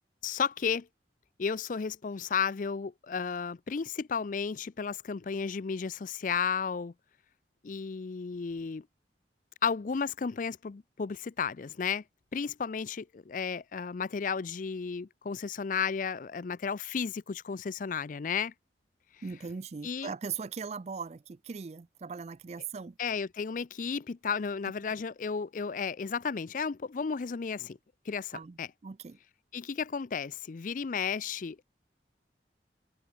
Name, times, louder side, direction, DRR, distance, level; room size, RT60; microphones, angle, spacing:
voice 1, 0.2-0.9 1.4-6.9 7.6-8.9 9.6-12.0 12.3-18.5 19.8-20.1 23.0-27.8 28.1-28.7 29.5-31.6, left 6 dB, 45° left, 0.4 m, -33 dB
voice 2, 19.2-22.9 28.3-28.6 28.8-29.2, right 5 dB, 35° right, 0.4 m, -39 dB
head